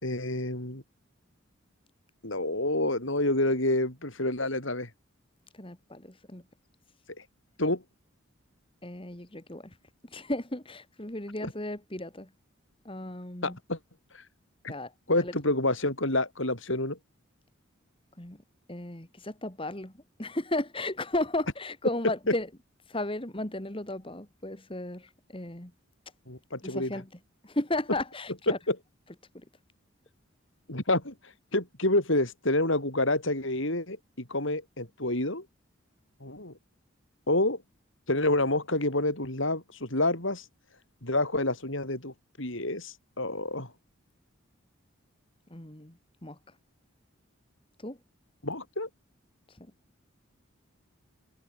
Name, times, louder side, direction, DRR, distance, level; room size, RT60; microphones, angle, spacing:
voice 1, 0.0-0.8 2.2-4.9 7.6-7.8 11.4-11.5 13.4-13.8 14.6-14.7 15.1-17.0 22.3-22.4 26.3-26.9 28.5-28.8 30.7-31.1 31.5-35.4 36.2-36.5 37.3-37.6 38.1-40.4 41.0-43.7 48.4-48.9, left 2 dB, 65° left, 6.2 m, -28 dB
voice 2, 5.5-6.4 8.8-9.8 10.0-12.3 12.9-13.6 14.7-15.3 18.2-18.4 18.7-19.9 20.2-22.5 22.9-25.7 26.6-27.1 27.4-28.6 45.5-45.9 46.2-46.4 47.8-48.0 49.5-49.7, left 1 dB, 25° left, 2.0 m, -34 dB
head